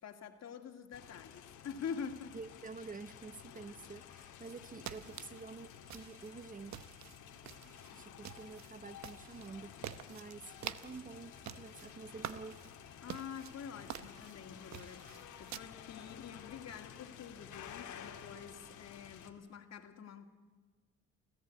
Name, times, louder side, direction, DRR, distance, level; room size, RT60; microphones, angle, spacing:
voice 1, 0.0-2.3 13.0-15.0 15.4-20.3, left 7 dB, 60° left, 2.3 m, -46 dB
sound 1, 0.9-19.3, left 9 dB, 85° left, 1.8 m, -53 dB
voice 2, 2.3-6.7 7.9-12.8, right 4 dB, 25° right, 0.8 m, -49 dB
sound 2, 4.4-15.6, right 10 dB, 65° right, 1.0 m, -49 dB
28.0 x 14.5 x 8.5 m
cardioid pair, 90°, 30 cm